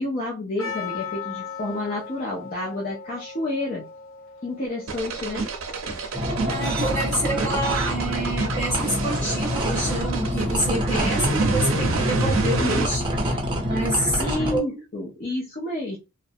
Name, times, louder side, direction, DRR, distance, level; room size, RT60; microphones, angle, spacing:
voice 1, 0.0-3.8 4.4-5.5 14.2-16.0, left 2 dB, 40° left, 0.5 m, -30 dB
Percussion, 0.6-5.5, left 6 dB, 80° left, 0.9 m, -37 dB
sound 1, 4.9-12.9, right 3 dB, 75° right, 0.6 m, -27 dB
sound 2, 6.1-14.6, equal, 25° right, 0.5 m, -27 dB
voice 2, 6.5-14.7, right 1 dB, 10° left, 1.0 m, -28 dB
2.5 x 2.0 x 2.6 m
head